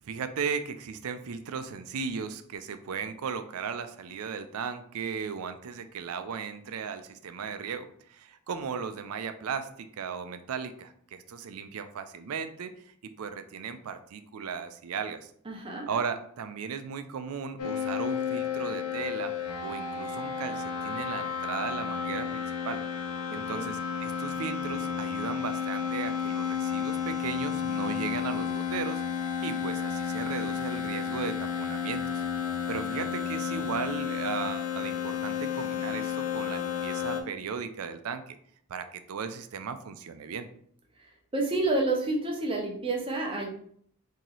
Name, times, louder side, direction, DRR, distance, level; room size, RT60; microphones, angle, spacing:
voice 1, 0.0-15.3 15.9-19.3 19.6-22.8 23.3-29.0 29.4-32.2 32.7-38.4 38.7-40.5, right 6 dB, 70° right, 10 dB, 0.4 m, -36 dB
voice 2, 15.5-15.9 23.3-23.7 41.3-43.5, right 2 dB, 25° right, 0 dB, 0.7 m, -29 dB
sound 1, 17.6-37.2, left 7 dB, 75° left, 0.6 m, -32 dB
3.0 x 2.8 x 3.9 m, 0.64 s
head